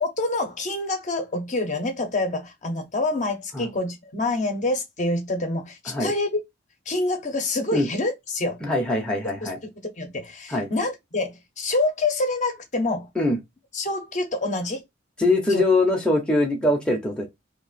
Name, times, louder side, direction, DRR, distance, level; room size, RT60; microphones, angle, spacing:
voice 1, 0.0-6.3 6.9-8.6 9.4-9.5 10.0-13.1 13.7-14.8 15.5-15.6, left 2 dB, 40° left, 0.8 m, -26 dB
voice 2, 8.6-9.6 10.5-10.7 13.2-13.4 15.2-17.3, left 2 dB, 5° left, 0.7 m, -22 dB
2.9 x 2.6 x 4.0 m
head